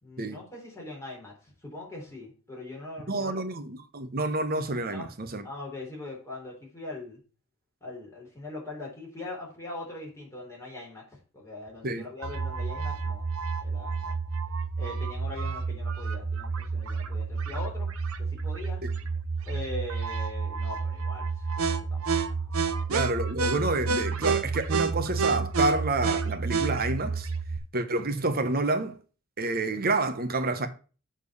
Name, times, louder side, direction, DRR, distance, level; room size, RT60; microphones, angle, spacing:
voice 1, 0.0-3.4 4.9-5.1 5.4-7.2 7.8-13.3 13.6-14.2 14.8-17.9 18.2-18.8 19.5-23.0, left 2 dB, 15° left, 3.8 m, -41 dB
voice 2, 3.1-5.4 11.8-12.0 18.8-18.9 22.9-27.3 27.7-29.0 29.4-30.7, right 2 dB, 45° right, 1.0 m, -28 dB
sound 1, 12.2-27.6, right 5 dB, 70° right, 0.8 m, -30 dB
7.1 x 4.4 x 6.9 m
head